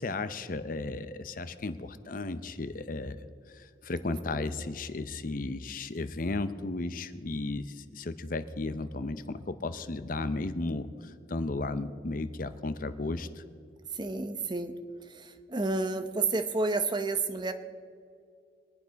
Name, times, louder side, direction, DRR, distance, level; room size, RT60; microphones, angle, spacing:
voice 1, 0.0-3.2 3.5-13.4, left 2 dB, 45° left, 12 dB, 0.6 m, -34 dB
voice 2, 13.9-14.7 15.0-17.5, right 3 dB, 25° right, 9 dB, 0.7 m, -30 dB
22.5 x 8.7 x 5.2 m, 2.3 s
head